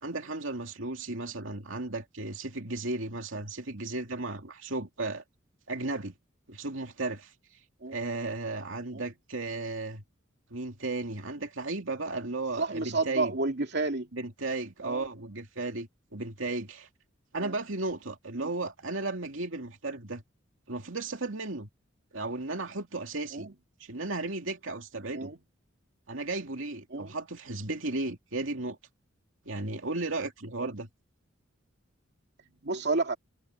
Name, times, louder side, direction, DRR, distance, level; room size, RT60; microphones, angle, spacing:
voice 1, 0.0-5.2 5.7-6.1 6.5-7.3 7.9-10.0 10.5-13.4 14.1-16.9 17.3-20.2 20.7-21.7 22.1-23.5 23.8-25.3 26.1-28.8 29.5-30.9, right 2 dB, 75° right, 2.6 m, -35 dB
voice 2, 12.5-14.1 14.8-15.0 17.4-17.5 18.4-18.5 23.3-23.5 25.1-25.4 26.9-27.1 30.6-30.7 32.6-33.2, right 3 dB, 60° right, 2.5 m, -30 dB
head